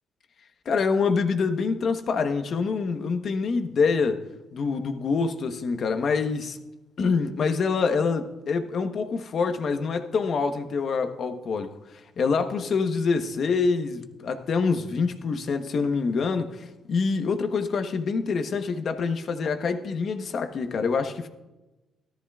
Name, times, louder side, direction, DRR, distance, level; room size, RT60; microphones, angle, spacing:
voice 1, 0.6-4.2 4.5-6.6 7.0-11.7 12.2-21.3, left 5 dB, 55° left, 1.1 m, -26 dB
15.0 x 13.0 x 2.4 m
cardioid pair, 90°, 0 cm